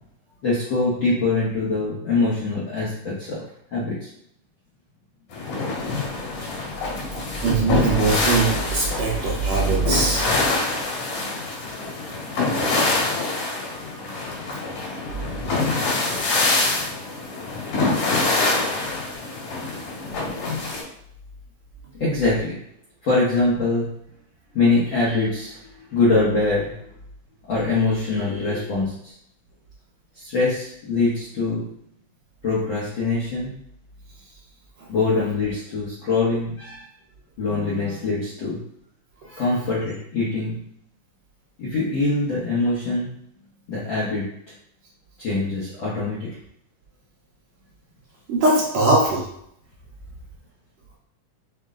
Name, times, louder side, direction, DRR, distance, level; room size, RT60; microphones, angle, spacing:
voice 1, 0.4-3.4 3.7-4.1 22.0-22.5 23.0-23.9 24.5-26.7 27.5-29.1 30.1-31.6 32.4-33.5 34.9-36.9 37.4-38.6 39.2-40.6 41.6-43.1 43.7-44.2 45.2-46.3, left 3 dB, 65° left, -8 dB, 1.2 m, -23 dB
sound 1, 5.3-20.8, left 3 dB, 80° left, 3.6 m, -25 dB
voice 2, 7.1-10.3 11.1-11.2 11.7-11.8 16.6-16.7 48.3-49.2, right 3 dB, 70° right, -4 dB, 1.9 m, -21 dB
6.3 x 2.2 x 3.6 m, 0.72 s
omnidirectional pair, 3.7 m